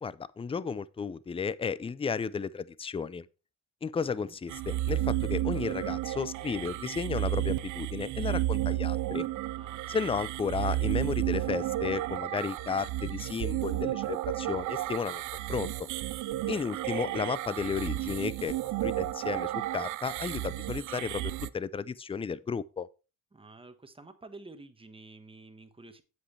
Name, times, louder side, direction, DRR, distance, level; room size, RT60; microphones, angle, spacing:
voice 1, 0.0-3.3 3.8-9.3 9.9-15.2 15.5-15.7 16.5-18.6 18.8-22.9, left 5 dB, 20° left, 0.5 m, -33 dB
voice 2, 4.0-4.4 9.6-10.0 16.5-16.8 23.3-26.0, right 2 dB, 20° right, 1.3 m, -50 dB
sound 1, 4.5-21.5, right 15 dB, 80° right, 0.5 m, -32 dB
8.7 x 7.9 x 3.3 m
cardioid pair, 90°, 30 cm